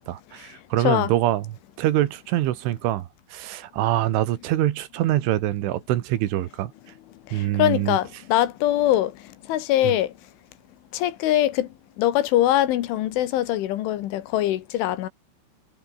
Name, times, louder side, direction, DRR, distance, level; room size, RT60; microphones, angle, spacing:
voice 1, 0.0-1.5 1.8-6.7 7.3-8.0 9.8-9.9, right 14 dB, 75° right, 3.8 m, -24 dB
voice 2, 7.3-10.1 10.9-11.7 12.0-15.1, left 13 dB, 75° left, 3.8 m, -23 dB
omnidirectional pair, 5.9 m